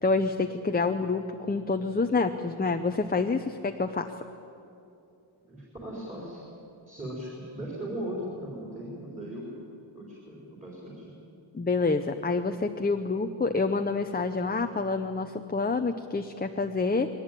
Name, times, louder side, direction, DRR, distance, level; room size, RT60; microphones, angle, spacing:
voice 1, 0.0-4.1 11.5-17.1, left 3 dB, 20° left, 6 dB, 0.6 m, -27 dB
voice 2, 5.5-6.4 6.9-9.6 9.9-11.1, right 1 dB, 15° right, -5 dB, 4.3 m, -38 dB
21.5 x 18.5 x 9.1 m, 2.8 s
wide cardioid pair, 155°, 49 cm